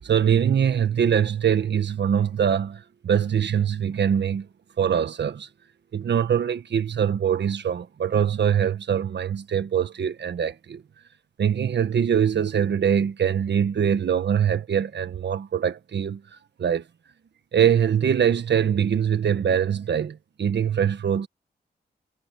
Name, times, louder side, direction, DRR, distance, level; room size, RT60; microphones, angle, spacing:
voice 1, 0.0-4.5 4.8-5.5 5.9-10.8 11.4-16.2 16.6-16.8 17.5-21.3, right 8 dB, 75° right, 1.4 m, -23 dB
cardioid pair, 80°, 18 cm